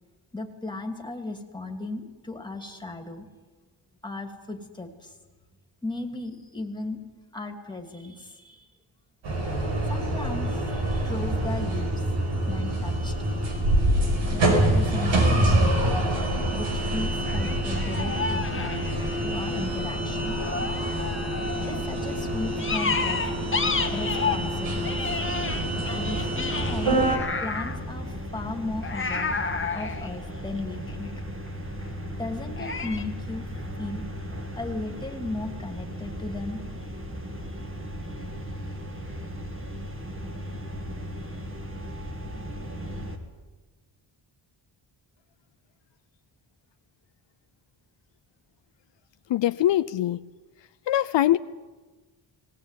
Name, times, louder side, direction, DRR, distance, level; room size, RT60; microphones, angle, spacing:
voice 1, 0.3-3.3 4.0-5.2 5.8-7.0 7.3-8.7 9.9-13.2 14.3-15.9 16.5-18.9 19.2-20.4 21.6-23.3 23.9-25.1 25.9-27.0 27.4-29.4 29.7-31.1 32.2-34.0 34.5-36.6, left 2 dB, 10° left, 3 dB, 2.6 m, -36 dB
sound 1, 9.2-27.2, right 1 dB, 75° right, 5.0 m, -26 dB
sound 2, 14.9-15.1 17.3-19.5 20.4-21.8 22.6-24.5 24.8-27.8 28.8-31.1 32.6-33.0, left 5 dB, 25° left, 1.6 m, -31 dB
sound 3, 23.5-43.2, equal, 25° right, 2.7 m, -36 dB
voice 2, 49.3-50.2 50.9-51.4, left 13 dB, 70° left, 13 dB, 0.6 m, -22 dB
19.5 x 18.0 x 9.2 m, 1.3 s
wide cardioid pair, 130°, 45 cm